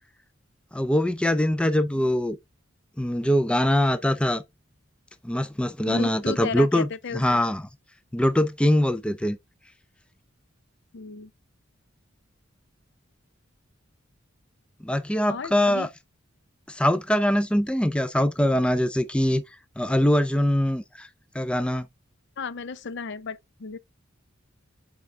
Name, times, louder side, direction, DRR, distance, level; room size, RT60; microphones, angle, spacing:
voice 1, 0.7-2.4 3.0-4.4 5.2-7.6 8.1-9.4 14.8-15.9 16.7-19.4 19.8-21.1 21.3-21.9, left 1 dB, 5° left, 0.4 m, -23 dB
voice 2, 5.9-7.4 10.9-11.3 15.3-15.9 22.4-23.8, left 5 dB, 60° left, 0.6 m, -34 dB
7.8 x 3.6 x 3.3 m
head